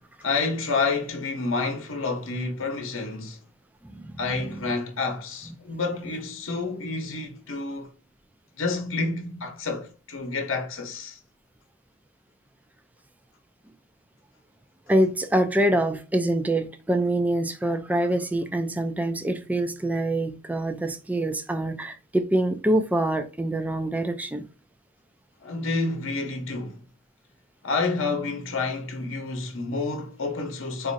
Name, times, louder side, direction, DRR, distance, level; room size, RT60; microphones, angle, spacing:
voice 1, 0.2-3.4 4.2-7.9 8.6-11.2 25.4-26.8 27.6-30.9, left 3 dB, 70° left, 0.8 m, -29 dB
voice 2, 3.8-4.6 14.9-24.4, right 1 dB, 10° right, 0.3 m, -25 dB
4.1 x 2.5 x 2.6 m
head